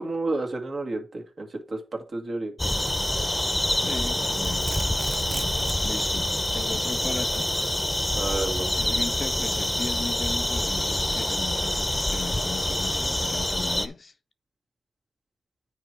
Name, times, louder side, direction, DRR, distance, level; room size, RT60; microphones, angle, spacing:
voice 1, 0.0-2.5 8.1-8.7, right 2 dB, 55° right, 2.0 m, -31 dB
sound 1, 2.6-13.9, left 1 dB, 10° left, 0.9 m, -26 dB
voice 2, 3.7-4.7 5.8-7.5 8.8-14.1, left 4 dB, 50° left, 0.7 m, -37 dB
Domestic sounds home sounds, 3.9-5.9, right 5 dB, 70° right, 0.6 m, -39 dB
9.4 x 4.6 x 4.5 m
cardioid pair, 60°, 0 cm